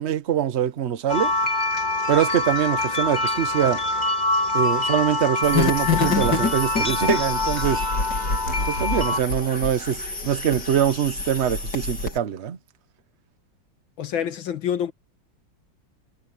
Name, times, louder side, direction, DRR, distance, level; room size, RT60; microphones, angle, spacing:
voice 1, 0.0-1.3 2.1-3.8 4.5-7.8 8.7-12.6, right 9 dB, 45° right, 1.0 m, -23 dB
sound 1, 1.1-9.2, left 2 dB, 20° left, 2.7 m, -25 dB
sound 2, 5.4-12.2, left 4 dB, 60° left, 4.6 m, -27 dB
voice 2, 14.0-14.9, left 9 dB, 85° left, 2.2 m, -27 dB
omnidirectional pair, 2.1 m